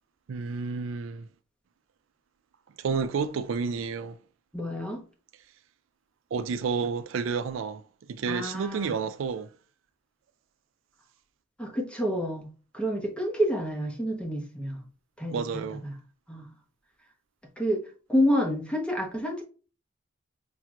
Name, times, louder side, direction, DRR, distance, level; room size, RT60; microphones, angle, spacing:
voice 1, 0.3-1.3 2.8-4.2 6.3-7.8 8.1-9.5 15.3-15.8, right 5 dB, 75° right, 0.4 m, -30 dB
voice 2, 4.5-5.0 8.3-9.0 11.6-12.5 12.7-14.8 15.2-15.9 16.3-16.5 17.6-17.8 18.1-19.4, equal, 5° left, 1.0 m, -28 dB
5.8 x 2.9 x 2.5 m
head